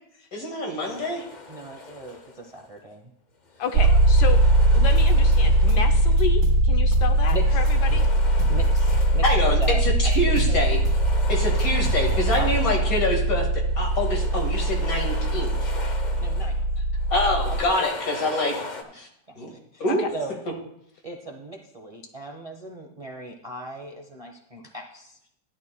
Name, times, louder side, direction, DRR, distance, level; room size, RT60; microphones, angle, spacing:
voice 1, 0.3-1.2 3.9-4.0 9.2-10.8 11.3-15.7 17.1-18.6 18.9-19.1 19.4-19.5 19.8-20.0, left 1 dB, 60° left, 1 dB, 2.3 m, -26 dB
sound 1, 0.8-2.7 3.5-6.4 7.0-9.8 10.2-13.3 13.7-16.7 17.0-18.8, left 3 dB, 35° left, 0.7 m, -40 dB
voice 2, 1.5-3.1 3.5-3.6 7.3-7.6 7.9-8.0 8.5-10.6 12.3-12.9 16.2-16.5 17.5-18.0 18.8-18.9 19.3-19.8 20.1-20.4 21.0-25.2, right 2 dB, 25° right, 1 dB, 0.9 m, -38 dB
voice 3, 3.6-4.4 4.7-8.1 19.9-20.1, left 7 dB, 80° left, 7 dB, 1.3 m, -31 dB
sound 2, 3.7-17.6, right 1 dB, 85° right, 1.2 m, -21 dB
sound 3, 5.0-7.3 7.7-9.3 9.6-12.8, right 1 dB, 55° right, 2.8 m, -33 dB
14.0 x 10.5 x 2.2 m, 0.73 s
omnidirectional pair, 1.8 m